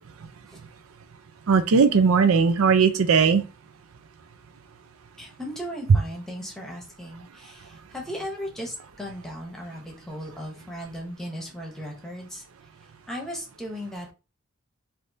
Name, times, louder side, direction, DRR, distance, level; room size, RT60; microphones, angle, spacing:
voice 1, 1.5-3.4 5.9-6.0, right 5 dB, 90° right, 0.5 m, -18 dB
voice 2, 5.2-12.4 13.1-14.1, equal, ahead, 0.9 m, -36 dB
3.4 x 2.6 x 2.7 m
head